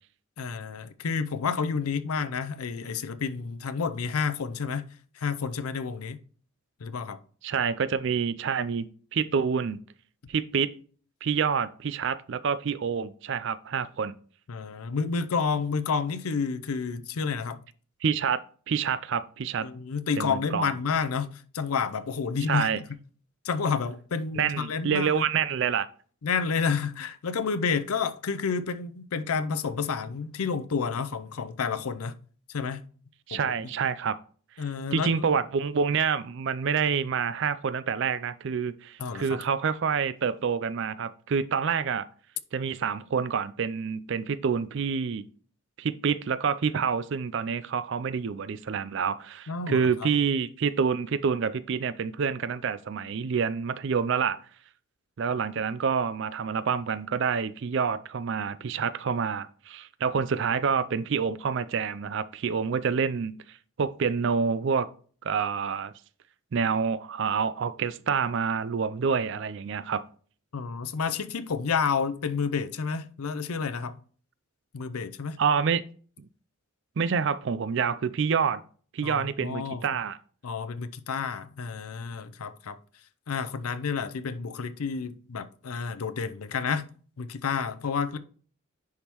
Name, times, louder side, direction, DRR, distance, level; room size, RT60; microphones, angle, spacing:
voice 1, 0.4-4.8 5.2-6.2 6.8-7.2 14.5-17.6 19.6-22.8 23.4-25.3 26.2-32.1 32.5-32.8 33.3-33.4 34.6-35.1 39.0-39.4 49.5-50.1 70.5-74.0 74.7-75.4 79.0-79.8 80.4-82.8 83.3-86.9 87.2-88.2, left 5 dB, 85° left, 0.5 m, -30 dB
voice 2, 7.4-9.8 10.3-10.7 11.2-14.1 18.0-18.4 18.7-19.7 20.2-20.7 22.5-22.8 24.3-25.9 33.3-34.2 34.9-42.1 42.5-45.2 45.8-54.4 55.2-63.4 63.8-64.9 65.2-65.9 66.5-70.0 75.4-75.8 76.2-76.3 77.0-78.6 78.9-80.2, right 6 dB, 55° right, 0.4 m, -27 dB
10.5 x 3.6 x 3.0 m
head